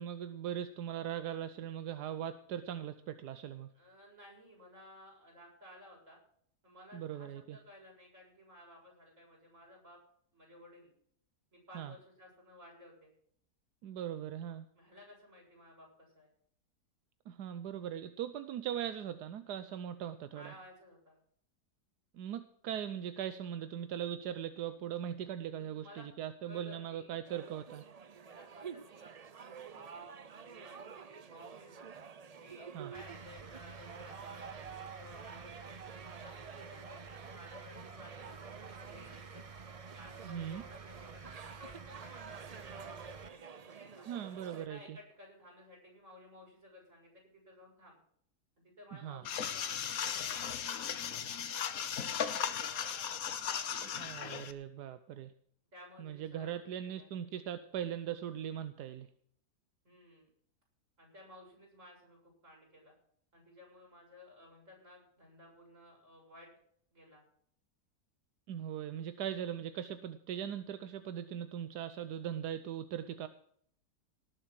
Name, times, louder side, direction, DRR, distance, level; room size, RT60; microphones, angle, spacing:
voice 1, 0.0-3.7 6.9-7.6 11.7-11.9 13.8-14.6 17.3-20.5 22.1-27.8 32.7-32.9 40.3-40.6 44.1-45.0 48.9-49.2 54.0-55.3 56.0-59.1 68.5-73.3, right 10 dB, 90° right, 11 dB, 1.3 m, -40 dB
voice 2, 3.7-6.2 6.6-10.0 10.3-10.9 11.5-13.1 14.8-16.3 20.3-21.2 25.4-26.0 26.4-27.1 28.2-29.1 29.4-31.9 32.4-35.7 36.1-39.4 39.9-44.1 44.6-48.0 48.6-53.8 55.7-57.1 59.8-60.3 61.0-62.9 63.3-66.6 66.9-67.2, left 1 dB, 50° right, -2 dB, 7.6 m, -56 dB
sound 1, 27.3-44.7, right 6 dB, 70° right, 0.3 m, -50 dB
sound 2, 32.9-43.3, right 4 dB, 30° right, 0.7 m, -51 dB
sound 3, 49.2-54.5, left 8 dB, 65° left, 1.4 m, -37 dB
18.5 x 7.8 x 5.9 m, 0.65 s
omnidirectional pair, 1.7 m